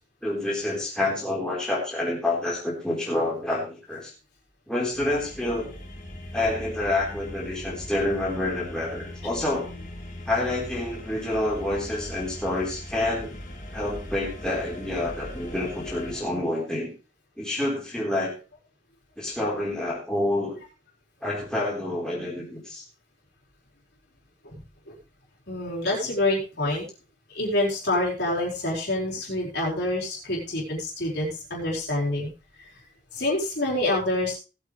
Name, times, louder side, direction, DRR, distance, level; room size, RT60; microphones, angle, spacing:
voice 1, 0.2-4.1 4.7-5.7 6.3-9.7 10.3-13.3 13.7-16.9 17.4-18.3 19.2-20.6 21.2-22.8, left 1 dB, 5° left, -6 dB, 4.2 m, -28 dB
sound 1, 4.9-16.2, left 1 dB, 40° left, 2.6 m, -40 dB
voice 2, 25.5-26.8 27.3-32.3 33.1-34.4, left 1 dB, 60° left, -4 dB, 4.6 m, -27 dB
18.5 x 8.3 x 3.4 m, 0.33 s
head